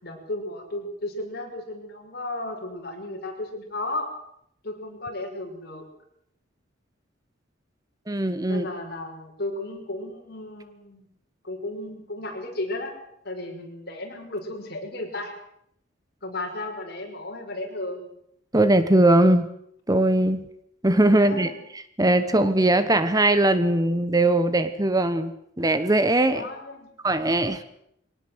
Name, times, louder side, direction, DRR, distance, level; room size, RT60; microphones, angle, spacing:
voice 1, 0.0-4.1 4.6-5.9 8.5-11.1 11.4-12.9 13.2-15.4 16.2-18.1 21.2-21.6 26.2-26.9, left 2 dB, 55° left, 2 dB, 6.2 m, -34 dB
voice 2, 8.1-8.7 18.5-19.5 19.9-20.5 20.8-26.4 27.0-27.6, right 1 dB, 20° right, 11 dB, 1.1 m, -20 dB
23.0 x 18.5 x 8.0 m, 0.73 s
head